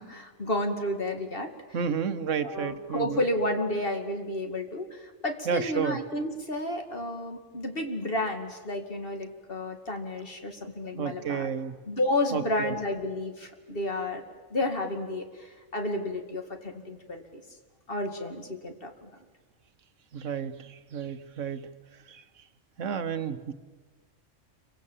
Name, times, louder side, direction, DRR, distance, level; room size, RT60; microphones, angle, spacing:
voice 1, 0.0-1.5 2.4-11.5 11.9-14.2 14.5-17.4 17.9-19.1, left 1 dB, 45° left, 4 dB, 2.6 m, -31 dB
voice 2, 1.7-3.2 5.5-6.0 11.0-11.7 12.3-12.7 20.1-21.7 22.1-22.2 22.8-23.5, right 7 dB, 75° right, 10 dB, 1.4 m, -31 dB
28.5 x 24.5 x 7.4 m, 1.3 s
omnidirectional pair, 1.3 m